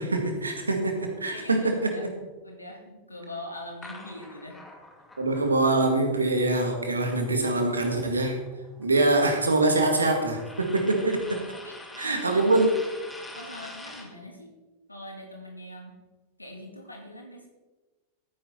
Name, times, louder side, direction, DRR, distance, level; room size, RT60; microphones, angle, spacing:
voice 1, 0.0-2.1 5.2-8.4 8.8-11.4 12.0-12.7, right 2 dB, 75° right, 4 dB, 2.0 m, -24 dB
voice 2, 1.3-2.1 2.4-4.6 11.5-12.7 13.3-14.5 14.9-16.0 16.4-17.5, left 1 dB, 85° left, 1 dB, 2.9 m, -42 dB
sound 1, 3.8-7.9 8.2-14.2, left 2 dB, 5° left, 2.2 m, -46 dB
14.0 x 9.5 x 4.3 m, 1.2 s
figure-of-eight pair, 90°, 0 cm